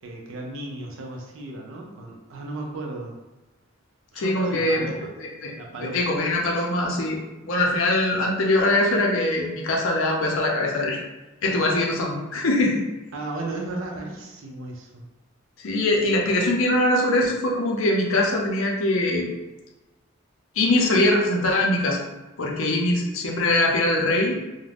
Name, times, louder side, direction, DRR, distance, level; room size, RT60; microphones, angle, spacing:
voice 1, 0.0-3.2 4.1-5.1 5.5-6.0 13.1-15.1, right 2 dB, 65° right, 1 dB, 0.5 m, -34 dB
voice 2, 4.2-4.9 5.4-5.5 5.8-7.2 7.4-11.0 11.4-12.9 15.6-19.3 20.6-22.1 22.4-24.4, left 1 dB, 70° left, 0 dB, 0.5 m, -22 dB
2.4 x 2.1 x 3.3 m, 1.1 s
head